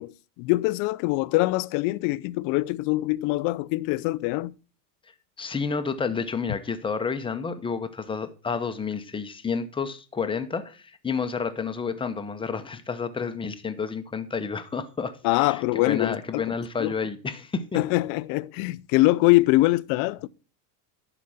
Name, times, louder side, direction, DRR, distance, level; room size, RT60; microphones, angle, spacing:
voice 1, 0.0-4.5 15.2-16.4 16.8-16.9 17.7-20.3, left 20 dB, 45° left, 0.5 m, -23 dB
voice 2, 5.4-17.6, left 5 dB, 10° left, 0.8 m, -30 dB
11.5 x 5.0 x 5.6 m
supercardioid pair, 130°, 49 cm